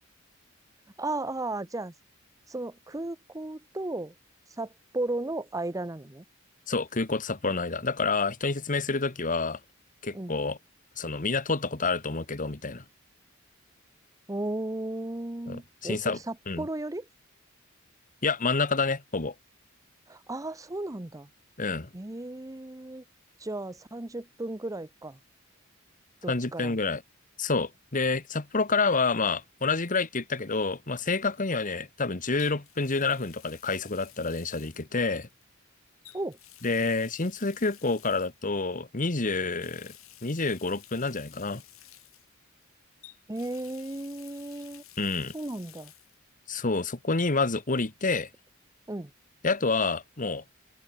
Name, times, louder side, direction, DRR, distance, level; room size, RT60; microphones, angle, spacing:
voice 1, 1.0-1.9 2.5-4.1 4.6-6.2 10.1-10.4 14.3-17.1 20.1-21.3 21.9-23.0 23.4-25.2 26.2-26.8 36.1-36.4 43.3-44.8 45.3-45.9 48.9-49.1, right 2 dB, 15° right, 0.8 m, -35 dB
voice 2, 6.7-9.6 10.0-10.6 11.0-12.8 15.5-16.2 16.5-16.7 18.2-19.3 21.6-21.9 26.3-27.0 27.4-35.3 36.6-39.9 40.2-41.6 45.0-45.3 46.5-48.3 49.4-50.4, left 3 dB, 40° left, 1.6 m, -28 dB
Water tap faucet, 32.4-35.4 36.0-38.5 39.2-42.7 43.0-46.2 46.5-46.6 48.1-48.2, left 15 dB, 90° left, 7.0 m, -53 dB
open air
head